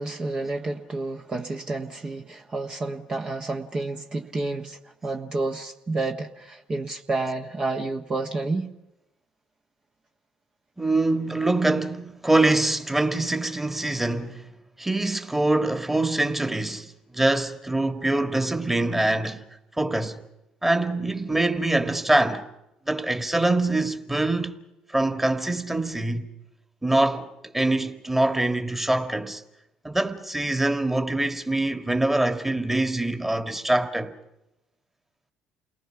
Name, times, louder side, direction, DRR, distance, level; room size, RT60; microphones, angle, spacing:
voice 1, 0.0-8.7, right 2 dB, 35° right, 1.4 m, -30 dB
voice 2, 10.8-14.5 14.8-19.5 19.8-20.2 20.6-22.5 22.9-24.6 24.9-26.3 26.8-29.4 29.8-34.1, right 2 dB, 10° right, 1.9 m, -24 dB
29.0 x 19.5 x 5.9 m
hypercardioid pair, 60°, 3 cm